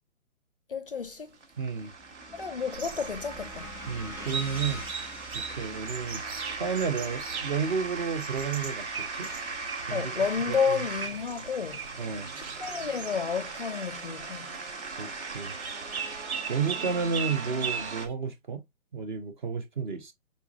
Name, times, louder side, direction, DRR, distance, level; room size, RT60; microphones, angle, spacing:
voice 1, 0.7-1.3 2.4-3.7 9.9-11.8 12.6-14.5, left 6 dB, 45° left, 0.4 m, -31 dB
sound 1, 1.0-18.1, right 4 dB, 55° right, 1.3 m, -39 dB
sound 2, 1.5-9.8, left 1 dB, 5° right, 1.3 m, -47 dB
voice 2, 1.6-1.9 3.9-5.1 5.3-6.2 6.5-8.9 9.1-9.3 9.9-10.8 12.0-12.3 15.0-15.5 16.5-18.6 18.9-20.1, right 5 dB, 35° right, 0.7 m, -32 dB
sound 3, 2.7-18.1, right 6 dB, 85° right, 0.9 m, -40 dB
4.6 x 4.0 x 2.4 m
hypercardioid pair, 155°, 42 cm